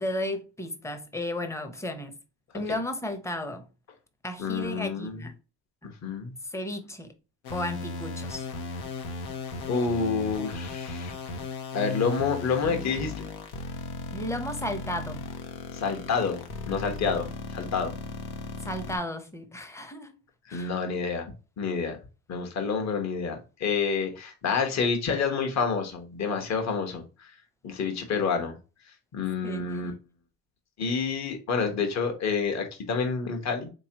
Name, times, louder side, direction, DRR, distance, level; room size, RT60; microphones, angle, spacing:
voice 1, 0.0-2.2 2.5-3.7 4.2-5.3 5.8-5.9 6.4-7.1 7.5-8.5 14.1-15.3 18.6-20.2 20.5-20.7 29.4-29.9, left 1 dB, 10° left, 0.7 m, -34 dB
voice 2, 4.4-5.2 5.8-6.3 9.7-11.1 11.7-13.2 15.7-17.9 20.5-21.3 21.6-22.0 22.3-27.3 27.6-28.6 29.1-29.9 30.8-33.7, left 5 dB, 50° left, 1.2 m, -28 dB
sound 1, 7.4-19.0, left 3 dB, 90° left, 1.0 m, -36 dB
3.7 x 3.0 x 2.8 m
cardioid pair, 100°, 36 cm